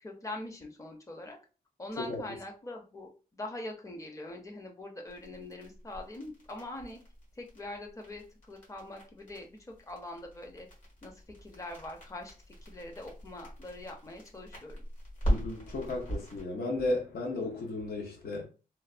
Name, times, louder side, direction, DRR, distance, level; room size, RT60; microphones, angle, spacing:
voice 1, 0.0-1.4 1.8-7.0 7.3-10.7 11.0-14.8, left 1 dB, 20° left, 0.6 m, -43 dB
sound 1, 5.1-16.4, equal, 60° left, 1.5 m, -39 dB
voice 2, 15.3-18.5, left 2 dB, 85° left, 0.8 m, -34 dB
3.1 x 2.0 x 2.4 m
wide cardioid pair, 160°, 16 cm